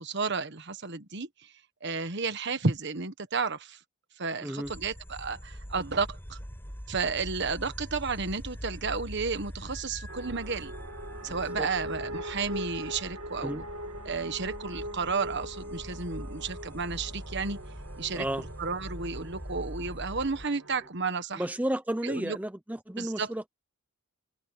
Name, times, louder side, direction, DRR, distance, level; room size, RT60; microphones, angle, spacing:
voice 1, 0.0-1.5 1.8-3.8 4.2-6.4 6.9-10.7 11.2-13.6 14.0-17.6 18.0-18.2 18.6-21.4 22.0-22.4 23.0-23.3, right 4 dB, 55° right, 1.4 m, -32 dB
voice 2, 4.4-4.7 11.3-11.7 13.4-13.6 18.1-18.4 21.3-23.5, right 1 dB, 5° right, 0.6 m, -33 dB
sound 1, 4.6-20.5, equal, 10° left, 7.4 m, -43 dB
sound 2, 10.1-20.9, right 1 dB, 85° right, 2.4 m, -42 dB
head